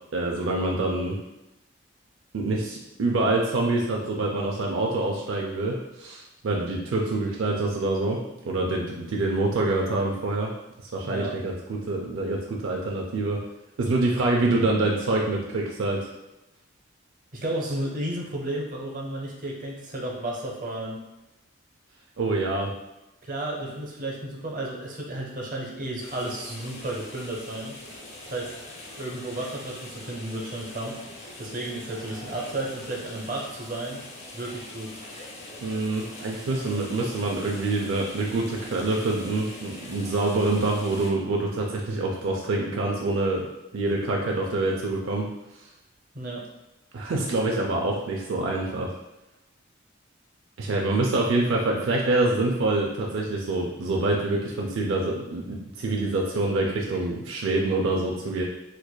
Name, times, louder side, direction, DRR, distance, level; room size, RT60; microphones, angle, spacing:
voice 1, 0.1-1.2 2.3-8.2 8.4-10.5 10.9-13.4 13.8-16.1 22.2-22.7 35.6-43.4 43.7-45.3 46.9-48.9 50.6-58.4, right 2 dB, 75° right, -1 dB, 0.4 m, -26 dB
voice 2, 17.3-21.0 23.2-27.7 28.3-28.5 28.9-31.0 31.4-34.0 34.3-34.9 46.1-46.4, right 1 dB, 45° right, -2 dB, 0.7 m, -33 dB
sound 1, 26.0-41.1, left 1 dB, 35° left, 0.6 m, -42 dB
4.5 x 2.4 x 2.2 m, 0.94 s
head